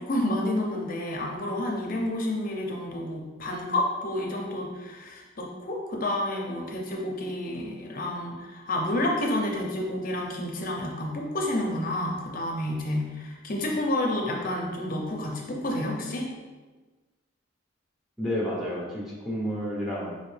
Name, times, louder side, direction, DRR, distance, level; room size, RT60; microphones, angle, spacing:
voice 1, 0.0-16.3, left 1 dB, 45° left, 0 dB, 0.6 m, -30 dB
voice 2, 18.2-20.2, equal, ahead, -5 dB, 0.8 m, -30 dB
5.0 x 2.7 x 3.2 m, 1.3 s
head